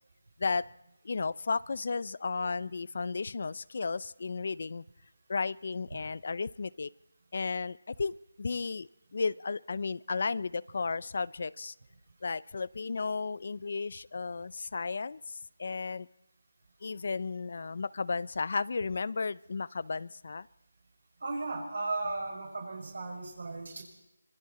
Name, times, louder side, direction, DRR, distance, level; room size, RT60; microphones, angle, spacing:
voice 1, 1.0-4.8 5.3-6.9 7.3-11.7 12.2-16.1 16.8-20.5, left 4 dB, 50° left, 21 dB, 0.7 m, -34 dB
voice 2, 21.2-23.8, right 3 dB, 65° right, 1 dB, 5.8 m, -35 dB
25.5 x 25.0 x 4.3 m, 0.89 s
figure-of-eight pair, 170°, 0 cm